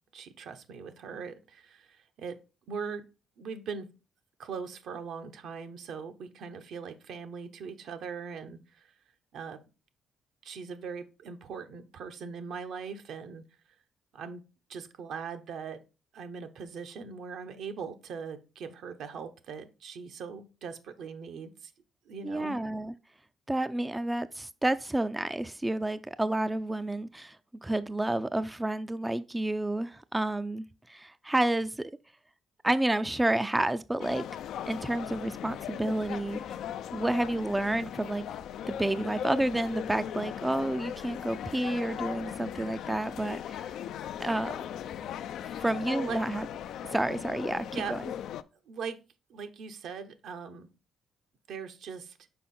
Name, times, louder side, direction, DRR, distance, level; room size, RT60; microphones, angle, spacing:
voice 1, 0.1-2.4 2.7-3.0 3.4-3.9 4.4-8.9 9.3-9.6 10.4-13.4 14.1-14.4 14.7-15.8 16.1-21.7 22.1-22.6 45.9-46.2 47.6-48.0 48.7-49.0 49.3-50.7 51.5-52.2, right 6 dB, 75° right, 0.8 m, -40 dB
voice 2, 22.2-22.9 23.5-27.4 27.6-31.9 32.6-34.2 34.7-36.4 36.9-38.2 38.7-43.7 44.2-44.6 45.6-46.5 46.9-48.0, right 1 dB, 10° right, 0.3 m, -30 dB
sound 1, 34.0-48.4, left 9 dB, 75° left, 0.3 m, -38 dB
5.7 x 4.6 x 4.2 m
cardioid pair, 90°, 0 cm